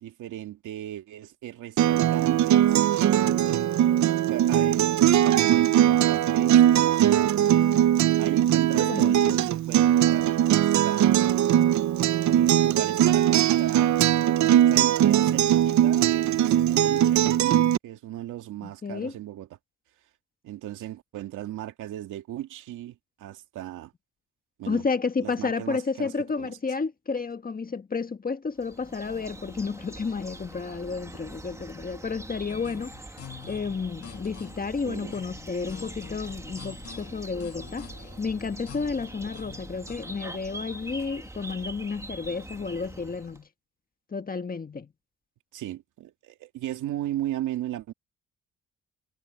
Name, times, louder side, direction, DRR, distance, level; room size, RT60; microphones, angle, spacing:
voice 1, 0.0-7.3 8.2-11.4 12.3-14.0 14.4-19.5 20.4-23.9 24.6-24.8 25.2-26.5 34.8-35.2 45.5-47.9, right 13 dB, 85° right, 2.4 m, -36 dB
Acoustic guitar, 1.8-17.8, right 11 dB, 70° right, 0.9 m, -20 dB
voice 2, 8.7-9.5 18.6-19.2 24.7-32.9 33.5-37.9 38.2-43.5 44.1-44.9, left 4 dB, 30° left, 1.6 m, -31 dB
sound 1, 28.6-43.4, right 1 dB, 10° right, 1.7 m, -43 dB
sound 2, 32.5-40.2, left 9 dB, 50° left, 2.3 m, -47 dB
cardioid pair, 90°, 30 cm